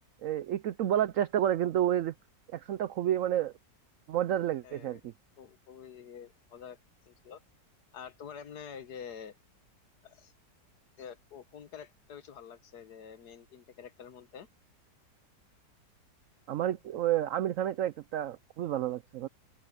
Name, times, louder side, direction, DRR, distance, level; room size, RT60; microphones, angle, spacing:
voice 1, 0.2-2.1 2.5-3.5 4.1-5.1 16.5-19.3, right 11 dB, 75° right, 0.7 m, -30 dB
voice 2, 4.6-5.0 5.4-6.8 7.0-7.4 7.9-9.4 10.0-10.3 11.0-14.5, left 7 dB, 65° left, 1.7 m, -47 dB
open air
omnidirectional pair, 1.9 m